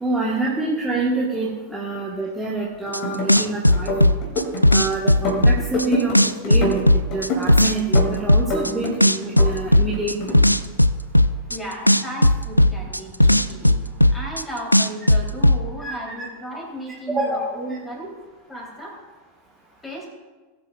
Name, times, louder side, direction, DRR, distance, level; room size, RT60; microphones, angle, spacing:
voice 1, 0.0-4.2 4.7-6.8 7.1-10.3 15.8-16.3 17.1-17.5, right 2 dB, 10° right, -4 dB, 1.5 m, -27 dB
sound 1, 2.9-3.0 3.3-5.9 6.1-8.7 9.0-11.6 11.9-14.4 14.7-15.6, left 1 dB, 90° left, 0.3 m, -15 dB
sound 2, 2.9-3.4 3.7-4.8 5.1-6.2 6.4-7.5 7.9-8.9 9.2-10.4, equal, 40° left, 2.6 m, -26 dB
voice 2, 11.5-13.8 14.1-18.2 18.5-19.0 19.8-20.1, right 1 dB, 15° left, -2 dB, 3.6 m, -34 dB
19.5 x 7.9 x 2.5 m, 1.3 s
figure-of-eight pair, 90°, 0 cm